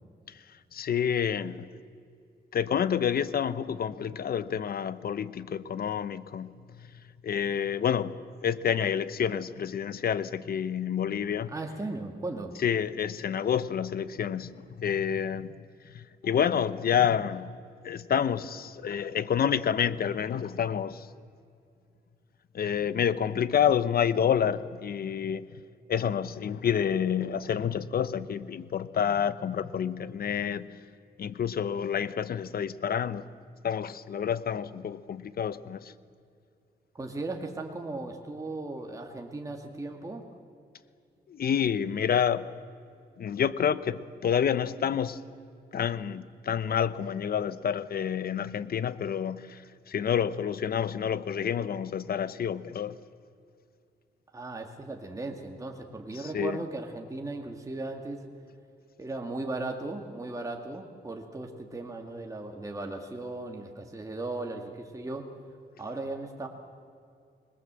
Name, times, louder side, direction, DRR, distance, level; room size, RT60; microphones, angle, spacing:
voice 1, 0.7-1.7 2.5-6.5 7.2-8.2 8.4-11.5 12.6-14.5 14.8-15.5 15.9-17.5 17.8-21.1 22.5-25.4 25.9-30.7 31.2-33.3 33.6-35.9 41.3-42.5 43.2-45.2 45.7-53.0 56.2-56.6, left 8 dB, 60° left, 15 dB, 0.9 m, -28 dB
voice 2, 11.5-12.6 36.9-40.2 54.3-58.2 59.0-65.3 65.8-66.5, right 2 dB, 20° right, 2 dB, 2.2 m, -37 dB
26.5 x 20.5 x 7.7 m, 2.4 s
cardioid pair, 115°, 18 cm